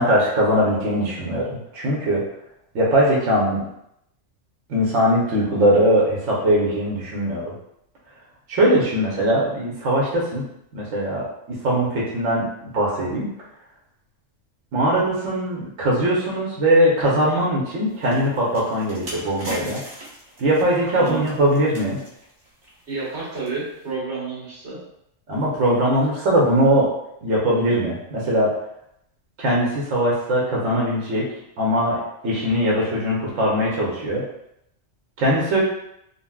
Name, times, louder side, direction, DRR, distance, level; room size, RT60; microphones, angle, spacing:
voice 1, 0.0-2.2 2.7-3.6 4.7-7.5 8.5-10.4 10.7-13.3 14.7-19.8 20.4-22.0 25.3-26.9 27.2-28.5 29.4-31.2 31.6-34.2 35.2-35.6, equal, 85° right, -5 dB, 1.2 m, -21 dB
sound 1, 17.9-23.9, right 1 dB, 35° right, 0.9 m, -39 dB
voice 2, 22.8-24.8, right 4 dB, 65° right, -9 dB, 1.6 m, -30 dB
3.9 x 2.1 x 2.3 m, 0.77 s
omnidirectional pair, 1.3 m